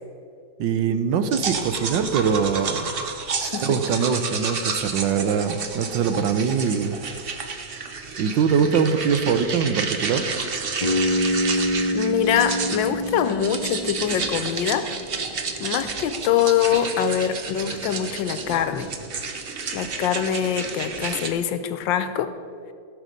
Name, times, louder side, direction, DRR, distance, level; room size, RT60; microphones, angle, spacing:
voice 1, 0.6-3.0 3.6-7.0 8.2-10.3, right 6 dB, 75° right, 10 dB, 1.4 m, -23 dB
sound 1, 1.3-21.3, right 5 dB, 50° right, 0.7 m, -31 dB
voice 2, 3.4-4.1 11.9-14.9 15.6-18.9 19.7-22.3, left 9 dB, 80° left, 11 dB, 1.4 m, -24 dB
Bass guitar, 10.8-14.9, left 1 dB, 30° left, 0.7 m, -26 dB
17.0 x 6.4 x 5.2 m, 2.3 s
omnidirectional pair, 2.1 m